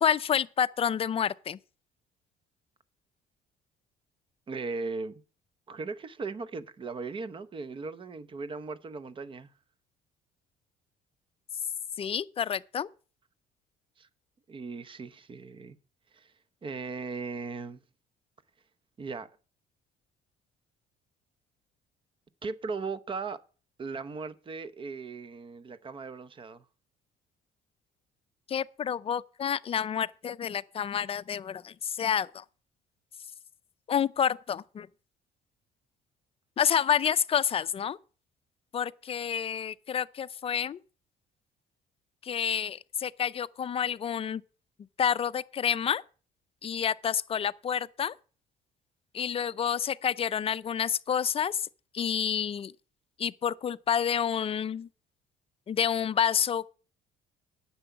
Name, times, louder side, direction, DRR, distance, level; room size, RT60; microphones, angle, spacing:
voice 1, 0.0-1.6 12.0-12.9 28.5-32.4 33.9-34.9 36.6-38.0 38.7-40.8 42.2-44.4 45.0-46.0 46.6-48.1 49.1-51.7 51.9-52.7 53.2-54.9 55.7-56.7, left 8 dB, 35° left, 0.5 m, -29 dB
voice 2, 4.5-5.2 5.7-9.5 14.0-14.1 14.5-15.8 16.1-16.3 16.6-17.8 19.0-19.3 22.4-23.4 23.8-26.6, right 4 dB, 30° right, 0.8 m, -38 dB
9.9 x 7.1 x 6.9 m
cardioid pair, 110°, 17 cm